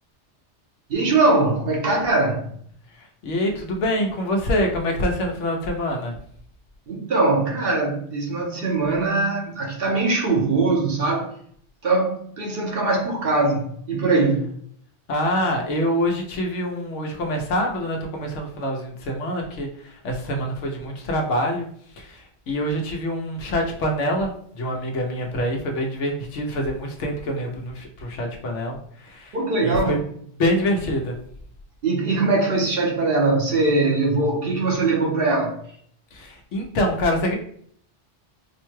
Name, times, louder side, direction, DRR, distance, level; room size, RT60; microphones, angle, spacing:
voice 1, 0.9-2.6 6.9-11.3 11.8-14.5 29.3-29.9 31.8-35.6, right 3 dB, 55° right, -1 dB, 1.0 m, -21 dB
voice 2, 3.0-6.1 15.1-21.7 22.0-29.4 29.6-30.0 30.4-31.1 36.1-37.4, equal, 85° left, 1 dB, 1.1 m, -25 dB
4.5 x 2.2 x 3.1 m, 0.63 s
omnidirectional pair, 1.2 m